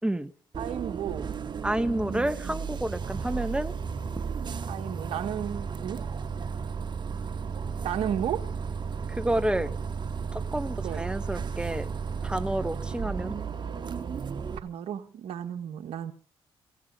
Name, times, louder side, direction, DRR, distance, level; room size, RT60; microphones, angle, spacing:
Bus, 0.5-14.6, right 6 dB, 45° right, 2.0 m, -34 dB
voice 1, 0.6-1.3 4.7-6.0 7.8-8.5 10.8-11.0 14.6-16.1, right 9 dB, 75° right, 1.4 m, -33 dB
voice 2, 1.6-3.7 9.1-9.7 10.3-11.9 12.2-13.4, right 1 dB, 10° right, 1.3 m, -29 dB
16.5 x 16.0 x 5.4 m
supercardioid pair, 65°, 10 cm